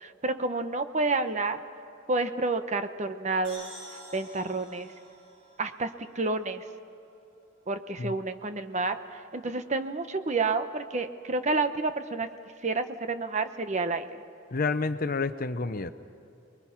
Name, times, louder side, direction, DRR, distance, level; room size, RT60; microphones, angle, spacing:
voice 1, 0.0-1.6 2.1-3.7 4.1-4.9 5.6-5.9 6.1-6.6 7.7-12.3 12.6-14.2, right 3 dB, 35° right, 9 dB, 1.0 m, -29 dB
sound 1, 3.4-7.0, equal, 75° right, 7.0 m, -49 dB
voice 2, 14.5-15.9, left 3 dB, 45° left, 11 dB, 0.8 m, -29 dB
28.5 x 22.0 x 5.9 m, 2.7 s
head